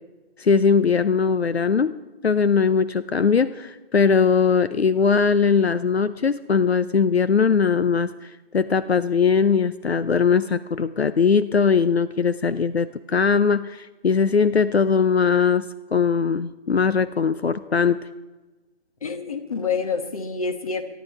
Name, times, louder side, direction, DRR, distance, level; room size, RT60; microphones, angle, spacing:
voice 1, 0.4-1.9 2.2-18.0, left 5 dB, 75° left, 13 dB, 0.6 m, -20 dB
voice 2, 19.0-20.8, left 5 dB, 35° left, 8 dB, 1.3 m, -27 dB
23.5 x 11.5 x 4.4 m, 1.2 s
figure-of-eight pair, 155°, 32 cm